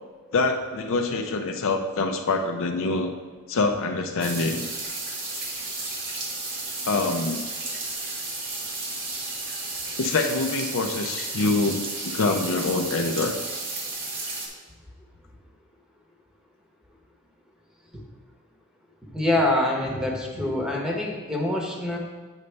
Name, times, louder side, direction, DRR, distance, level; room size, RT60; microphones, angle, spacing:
voice 1, 0.3-3.1 3.5-4.7 6.9-7.4 10.0-13.4, left 3 dB, 60° left, 4 dB, 0.5 m, -25 dB
sound 1, 4.2-14.5, right 2 dB, 55° right, 1.5 m, -33 dB
voice 2, 19.1-22.0, left 1 dB, 5° right, -1 dB, 1.0 m, -25 dB
8.1 x 5.3 x 3.3 m, 1.3 s
head